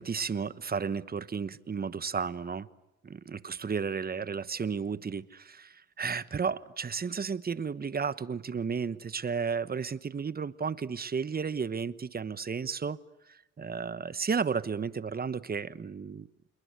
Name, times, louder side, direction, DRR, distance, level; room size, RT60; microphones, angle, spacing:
voice 1, 0.0-2.7 3.0-13.0 13.3-16.3, right 6 dB, 30° right, 16 dB, 1.2 m, -33 dB
28.0 x 22.0 x 9.6 m, 0.92 s
cardioid pair, 90°, 30 cm